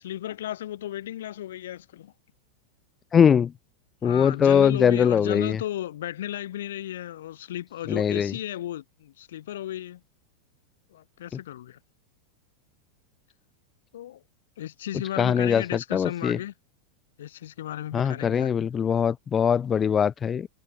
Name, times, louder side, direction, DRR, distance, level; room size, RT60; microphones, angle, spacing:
voice 1, 0.0-2.1 4.0-10.0 10.9-11.8 13.9-14.2 14.6-16.5 17.2-18.7, left 12 dB, 60° left, 3.4 m, -34 dB
voice 2, 3.1-3.5 4.0-5.6 7.9-8.3 15.2-16.4 17.9-20.5, left 7 dB, 20° left, 0.4 m, -22 dB
figure-of-eight pair, 90°, 0 cm